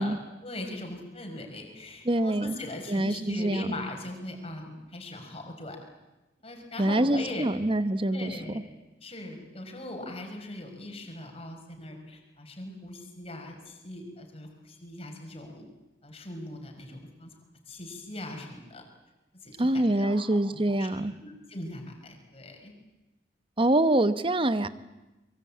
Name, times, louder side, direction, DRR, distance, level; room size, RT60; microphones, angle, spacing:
voice 1, 0.0-5.8 6.4-7.5 8.1-8.7 9.0-15.7 16.0-17.3 17.7-18.8 19.4-20.4 20.7-22.7, left 1 dB, 35° left, 3 dB, 5.3 m, -40 dB
voice 2, 2.0-2.6 2.9-3.7 6.8-8.3 19.6-21.1 23.6-24.7, right 1 dB, 30° right, 12 dB, 1.1 m, -25 dB
24.5 x 22.5 x 8.6 m, 1.0 s
head